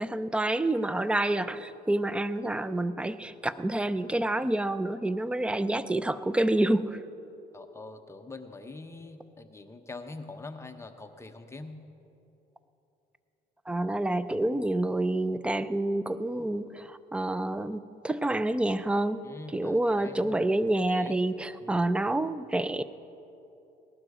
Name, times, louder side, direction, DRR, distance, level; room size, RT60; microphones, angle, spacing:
voice 1, 0.0-7.0 13.7-19.3 19.5-22.8, right 1 dB, 5° right, 14 dB, 0.4 m, -28 dB
voice 2, 7.5-11.8 19.2-20.4 20.9-21.2 21.4-21.9, left 3 dB, 15° left, 6 dB, 0.9 m, -44 dB
18.5 x 12.0 x 4.8 m, 2.9 s
cardioid pair, 110°, 17 cm